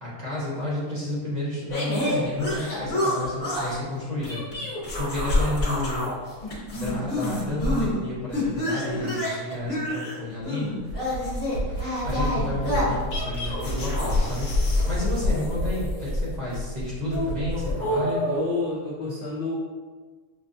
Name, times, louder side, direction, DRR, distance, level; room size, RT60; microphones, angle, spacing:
voice 1, 0.0-4.5 5.0-6.1 6.7-10.7 11.7-14.5 14.9-18.2, left 1 dB, 35° right, -7 dB, 0.8 m, -31 dB
sound 1, 1.7-3.8 4.2-6.1 6.4-7.9 8.3-16.3 17.0-18.4, left 1 dB, 40° left, 1.2 m, -27 dB
sound 2, 10.7-17.9, equal, 75° right, 1.5 m, -32 dB
voice 2, 18.3-19.5, left 3 dB, 65° left, -5 dB, 0.5 m, -29 dB
5.9 x 2.1 x 2.6 m, 1.4 s
omnidirectional pair, 1.7 m